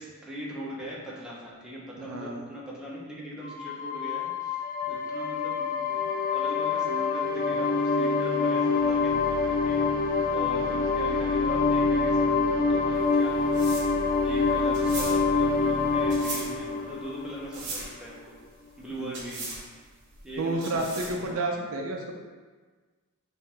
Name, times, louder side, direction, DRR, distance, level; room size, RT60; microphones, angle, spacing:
voice 1, 0.0-4.6 4.9-9.9 10.3-13.7 14.2-18.3 18.8-19.5 20.2-21.8, right 1 dB, 5° right, -7 dB, 0.9 m, -40 dB
voice 2, 2.0-2.4 10.5-10.8 19.0-19.2 20.4-22.1, right 2 dB, 75° right, 1 dB, 0.6 m, -31 dB
sound 1, 3.4-17.9, left 4 dB, 40° left, 0.4 m, -26 dB
sound 2, 12.9-21.3, right 3 dB, 55° right, 1.0 m, -39 dB
5.5 x 2.7 x 3.5 m, 1.4 s
head